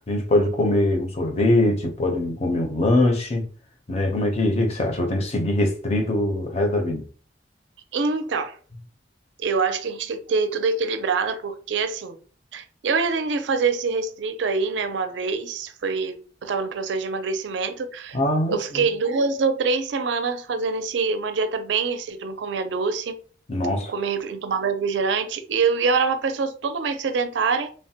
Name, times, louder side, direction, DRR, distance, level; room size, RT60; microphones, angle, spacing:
voice 1, 0.1-3.5 3.9-7.0 18.1-18.9 23.5-23.9, left 1 dB, 35° left, 0.5 m, -22 dB
voice 2, 7.9-8.6 9.4-12.2 12.5-18.2 18.5-23.2 23.9-27.7, right 4 dB, 70° right, 0.4 m, -25 dB
3.2 x 2.1 x 2.7 m
head